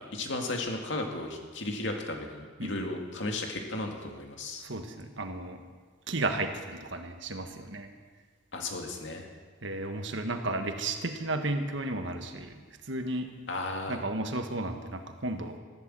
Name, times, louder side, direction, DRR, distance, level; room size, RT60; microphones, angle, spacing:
voice 1, 0.0-4.6 8.5-9.3 13.5-14.0, left 2 dB, 65° left, 2 dB, 2.2 m, -35 dB
voice 2, 4.6-5.6 6.1-7.9 9.6-13.3 13.9-15.6, right 2 dB, 70° right, 6 dB, 1.5 m, -33 dB
14.5 x 12.0 x 7.6 m, 1.5 s
head